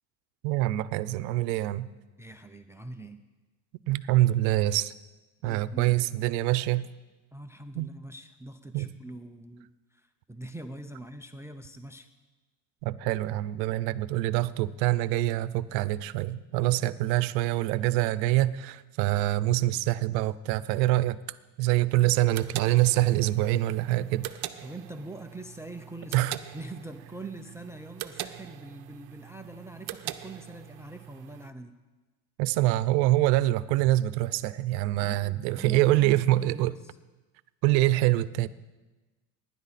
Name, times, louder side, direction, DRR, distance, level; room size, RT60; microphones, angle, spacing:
voice 1, 0.4-1.9 3.9-4.9 5.4-6.9 7.8-7.9 8.7-8.9 12.8-21.2 21.6-24.3 26.1-26.3 32.4-36.7 37.6-38.5, right 16 dB, 80° right, 0.8 m, -25 dB
voice 2, 2.2-3.2 5.4-6.2 7.3-12.1 24.6-26.3 26.5-31.8 35.0-37.0, right 2 dB, 5° right, 0.5 m, -43 dB
sound 1, 22.0-31.5, right 14 dB, 50° right, 0.9 m, -42 dB
24.5 x 11.0 x 4.2 m
supercardioid pair, 120°, 50 cm